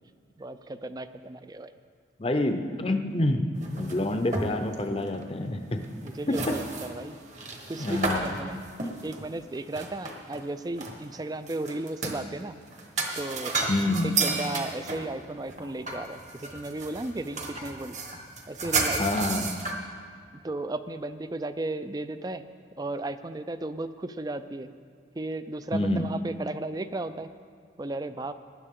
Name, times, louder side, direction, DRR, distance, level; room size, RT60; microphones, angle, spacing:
voice 1, 0.4-1.7 6.0-7.2 7.7-8.6 9.0-12.6 13.2-13.6 14.0-18.0 18.5-19.2 20.4-22.4 22.8-24.7 25.2-27.3 27.8-28.3, right 2 dB, 20° right, 12 dB, 0.4 m, -35 dB
voice 2, 2.2-3.4 3.8-5.8 6.3-6.4 7.8-8.3 13.7-14.1 19.0-19.6 25.7-26.1, left 1 dB, 30° left, 6 dB, 0.6 m, -27 dB
sound 1, 3.5-4.8 5.1-5.3 5.8-10.4 10.8-12.2 12.7-19.7, right 3 dB, 40° right, 1.2 m, -32 dB
19.0 x 10.5 x 3.7 m, 2.1 s
head